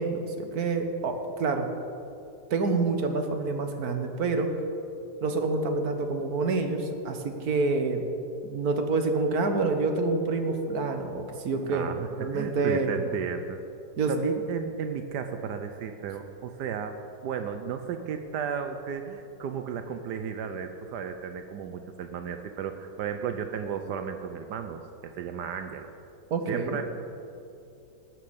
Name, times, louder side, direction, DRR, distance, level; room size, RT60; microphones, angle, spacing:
voice 1, 0.0-1.7 2.5-4.5 5.2-8.0 8.4-11.9 12.2-13.1 14.0-14.1 26.3-26.8, right 3 dB, 65° right, 6 dB, 1.6 m, -27 dB
voice 2, 11.7-13.6 14.1-25.9 26.5-26.8, right 7 dB, 80° right, 7 dB, 1.3 m, -34 dB
18.5 x 6.5 x 7.0 m, 2.7 s
omnidirectional pair, 1.8 m